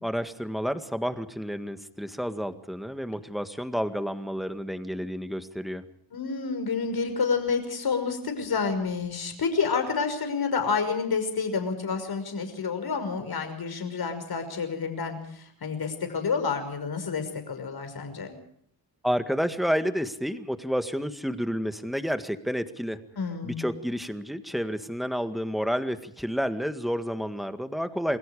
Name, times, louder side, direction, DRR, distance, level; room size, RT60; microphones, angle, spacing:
voice 1, 0.0-5.8 19.0-23.0 23.4-28.2, equal, ahead, 8 dB, 1.9 m, -30 dB
voice 2, 6.1-18.3 23.2-23.6, left 5 dB, 50° left, 7 dB, 5.8 m, -29 dB
29.0 x 21.5 x 5.0 m, 0.67 s
cardioid pair, 120°, 46 cm